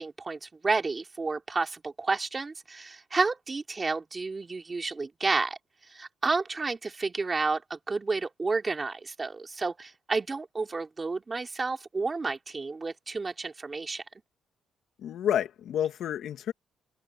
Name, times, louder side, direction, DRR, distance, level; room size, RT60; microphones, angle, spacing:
voice 1, 0.0-5.6 5.9-14.0, right 3 dB, 30° right, 3.9 m, -31 dB
voice 2, 15.0-16.5, left 10 dB, 75° left, 2.3 m, -29 dB
open air
cardioid pair, 90°, 0 cm